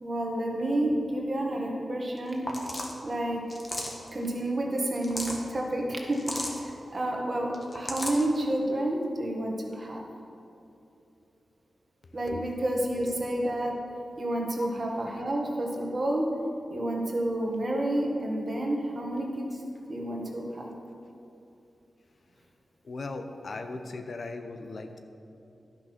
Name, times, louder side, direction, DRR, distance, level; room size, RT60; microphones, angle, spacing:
voice 1, 0.0-2.5 3.0-3.4 4.1-6.2 6.6-10.0 12.1-13.7 14.2-16.3 16.7-19.6 19.9-20.7, right 1 dB, 40° right, -1 dB, 1.6 m, -30 dB
sound 1, 2.2-2.3 2.5-3.0 3.5-4.1 4.9-5.4 6.1-6.6 7.5-8.2, left 1 dB, 30° left, 1.4 m, -34 dB
voice 2, 22.8-25.0, left 3 dB, 60° left, 7 dB, 0.7 m, -38 dB
11.0 x 5.9 x 6.0 m, 2.8 s
wide cardioid pair, 85°, 0 cm